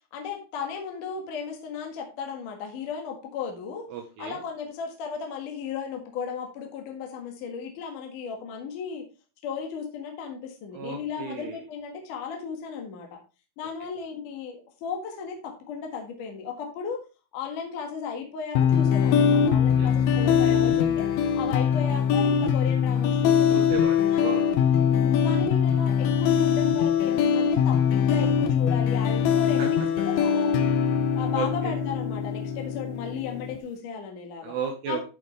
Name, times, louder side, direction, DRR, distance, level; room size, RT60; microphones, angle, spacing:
voice 1, 0.1-3.9 4.2-9.0 9.4-13.2 13.6-17.0 17.3-21.1 21.4-23.7 24.1-24.2 24.9-30.5 31.1-34.5 34.9-35.0, left 6 dB, 60° left, 2 dB, 2.5 m, -35 dB
voice 2, 3.9-4.4 10.7-11.6 19.8-19.9 23.5-24.6 29.6-29.7 31.3-31.7 34.4-35.0, right 6 dB, 70° right, 1 dB, 3.1 m, -34 dB
sound 1, 18.5-33.6, left 7 dB, 80° left, 2.2 m, -22 dB
11.0 x 5.8 x 3.2 m, 0.31 s
omnidirectional pair, 5.4 m